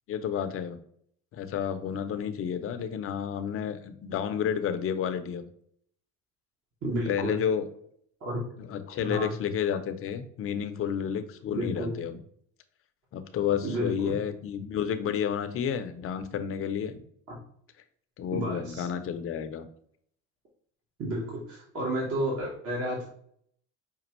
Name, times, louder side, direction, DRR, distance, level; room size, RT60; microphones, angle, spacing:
voice 1, 0.1-0.8 1.3-5.4 7.1-7.7 8.6-12.2 13.1-17.0 18.2-19.7, left 8 dB, 45° left, 9 dB, 0.6 m, -31 dB
voice 2, 6.8-7.4 8.2-8.4 9.0-9.3 11.5-12.0 13.6-14.2 18.3-18.9 21.0-23.1, right 1 dB, 45° right, -3 dB, 1.3 m, -31 dB
5.2 x 2.3 x 3.0 m, 0.64 s
hypercardioid pair, 75°, 33 cm